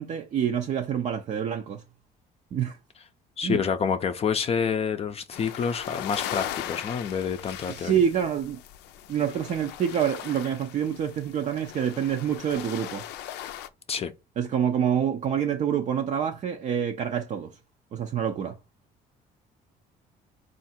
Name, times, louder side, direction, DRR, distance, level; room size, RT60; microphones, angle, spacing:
voice 1, 0.0-1.8 2.5-2.8 3.4-3.6 7.7-8.6 9.1-13.1 14.4-17.6 17.9-18.6, right 8 dB, 45° right, 0.5 m, -27 dB
voice 2, 3.4-8.0 13.9-14.1, left 6 dB, 35° left, 0.5 m, -28 dB
sound 1, 5.3-13.7, left 12 dB, 90° left, 0.5 m, -39 dB
3.6 x 2.5 x 4.2 m
cardioid pair, 110°, 17 cm